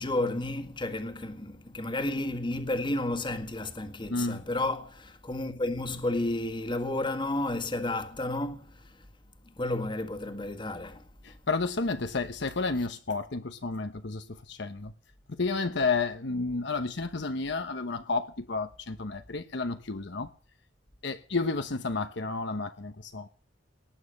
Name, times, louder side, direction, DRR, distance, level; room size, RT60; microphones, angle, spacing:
voice 1, 0.0-9.0 9.6-11.1, left 2 dB, 25° left, 1.7 m, -32 dB
voice 2, 4.1-4.4 11.2-14.9 15.3-20.3 21.0-23.3, left 3 dB, 65° left, 1.0 m, -31 dB
19.0 x 8.8 x 6.5 m
head